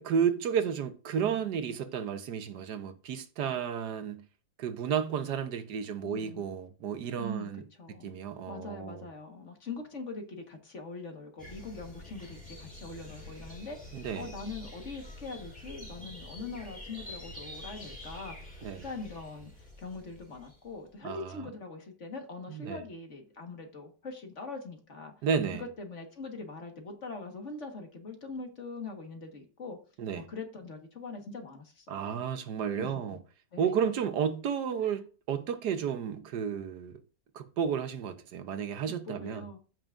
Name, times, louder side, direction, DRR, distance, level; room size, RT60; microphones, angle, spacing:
voice 1, 0.0-4.3 4.6-7.6 8.0-9.1 13.9-14.3 18.6-18.8 21.0-21.4 22.5-22.8 25.2-25.6 30.0-30.3 31.9-33.2 33.6-37.0 37.3-39.5, right 7 dB, 70° right, 1.5 m, -32 dB
voice 2, 6.0-6.5 7.2-8.1 8.5-18.5 18.8-25.1 25.5-29.8 30.2-32.0 32.8-33.0 33.5-33.7 34.8-34.9 38.8-39.6, left 3 dB, 45° left, 1.7 m, -42 dB
sound 1, 11.4-20.8, left 1 dB, 5° left, 3.5 m, -47 dB
14.0 x 6.0 x 2.5 m
omnidirectional pair, 1.9 m